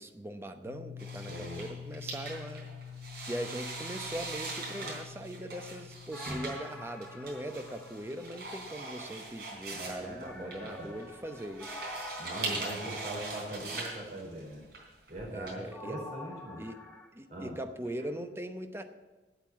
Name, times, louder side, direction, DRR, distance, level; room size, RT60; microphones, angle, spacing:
voice 1, 0.0-2.7 3.3-11.8 15.3-16.0 16.6-16.8 17.1-18.8, right 1 dB, 15° right, 7 dB, 0.8 m, -40 dB
sound 1, 0.6-11.2, left 7 dB, 85° left, 1.9 m, -49 dB
sound 2, 1.0-15.5, right 3 dB, 65° right, 3.7 m, -41 dB
voice 2, 1.3-1.6 9.7-11.0 12.2-14.6 15.1-16.6 17.3-17.6, right 1 dB, 45° right, -3 dB, 4.4 m, -41 dB
sound 3, 6.1-8.9 10.2-14.1 15.7-17.1, left 1 dB, 5° left, 1.4 m, -48 dB
8.5 x 8.2 x 9.2 m, 1.2 s
head